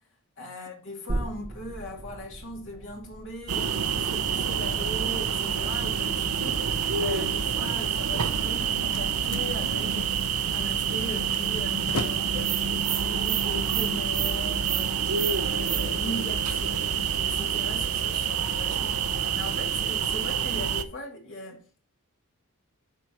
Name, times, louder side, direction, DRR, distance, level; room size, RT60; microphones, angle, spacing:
voice 1, 0.4-11.9 12.3-21.8, left 1 dB, 60° left, 2.6 m, -39 dB
sound 1, 1.1-8.4 8.7-8.8, right 1 dB, 30° right, 0.6 m, -39 dB
sound 2, 3.5-20.8, right 7 dB, 80° right, 0.8 m, -27 dB
Slam, 8.3-14.3, left 3 dB, 80° left, 0.9 m, -41 dB
13.5 x 4.4 x 3.0 m
head